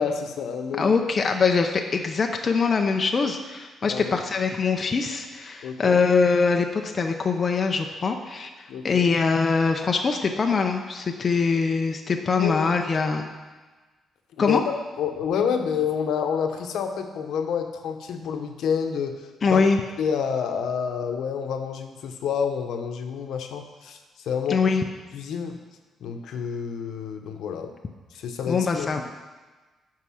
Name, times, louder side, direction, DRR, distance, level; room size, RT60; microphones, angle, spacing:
voice 1, 0.0-0.9 3.9-4.2 5.6-6.0 8.7-9.1 12.4-12.8 14.4-14.6 15.0-19.6 20.0-24.0 24.2-24.6 25.1-25.6 26.0-27.7 28.1-29.0, left 7 dB, 75° left, 5 dB, 1.0 m, -28 dB
voice 2, 0.8-13.3 14.4-14.6 19.4-19.8 24.5-24.8 28.5-29.0, left 5 dB, 30° left, 3 dB, 0.6 m, -23 dB
11.5 x 4.7 x 6.3 m, 1.3 s
cardioid pair, 165°, 0 cm